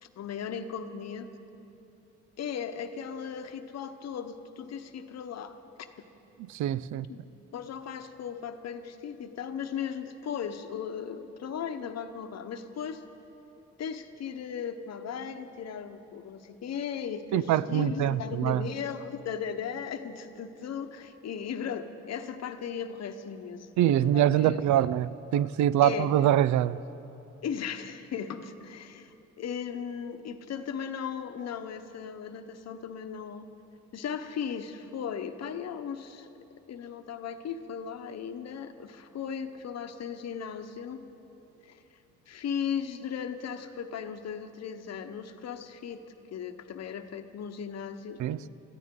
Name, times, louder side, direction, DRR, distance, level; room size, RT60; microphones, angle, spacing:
voice 1, 0.0-1.3 2.4-5.5 6.9-7.2 7.5-13.0 13.8-24.6 25.3-25.5 25.8-26.3 27.4-33.5 33.9-36.3 36.7-41.0 41.6-41.8 42.3-46.0 46.3-48.2, left 7 dB, 60° left, 8 dB, 0.9 m, -37 dB
voice 2, 6.5-7.1 17.3-18.7 23.8-26.8 48.2-48.5, right 11 dB, 75° right, 18 dB, 0.4 m, -24 dB
21.5 x 13.5 x 3.8 m, 2.9 s
cardioid pair, 90°, 30 cm